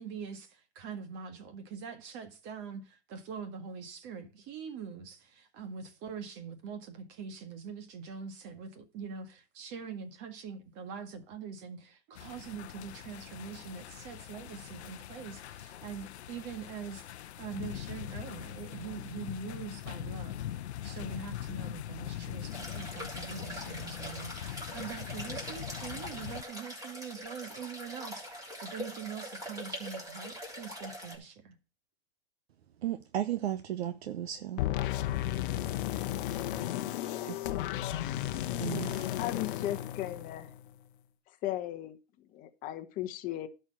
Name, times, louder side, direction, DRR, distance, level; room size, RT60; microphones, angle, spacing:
voice 1, 0.0-20.4 20.8-31.6, right 6 dB, 35° right, 1.8 m, -43 dB
sound 1, 12.1-26.4, left 12 dB, 80° left, 0.7 m, -42 dB
sound 2, 22.5-31.2, equal, 10° right, 3.5 m, -43 dB
voice 2, 32.8-34.6 37.2-37.6 38.6-39.1, right 11 dB, 70° right, 1.0 m, -35 dB
sound 3, 34.6-40.7, left 13 dB, 55° left, 0.9 m, -34 dB
voice 3, 39.1-40.5 41.4-43.5, left 14 dB, 25° left, 1.1 m, -37 dB
11.5 x 4.6 x 6.4 m
hypercardioid pair, 145°, 33 cm